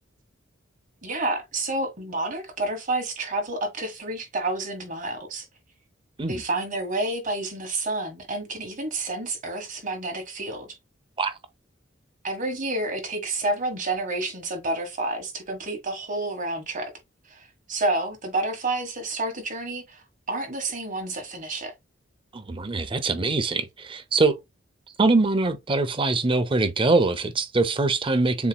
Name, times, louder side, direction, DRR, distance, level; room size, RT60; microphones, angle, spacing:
voice 1, 1.0-5.4 6.3-10.8 12.2-16.9 17.3-21.7, right 2 dB, 45° right, 1.5 m, -29 dB
voice 2, 22.3-24.3 25.0-28.5, right 3 dB, 25° right, 0.6 m, -23 dB
7.0 x 3.0 x 2.2 m
head